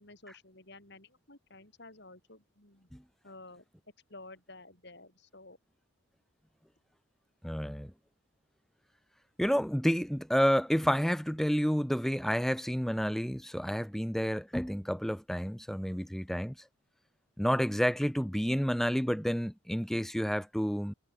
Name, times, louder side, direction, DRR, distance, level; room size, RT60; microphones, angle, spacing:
voice 1, 0.0-2.9 3.2-3.6 4.1-5.6, left 2 dB, 55° left, 6.0 m, -52 dB
voice 2, 7.4-7.9 9.4-16.5 17.4-20.9, equal, ahead, 0.9 m, -30 dB
head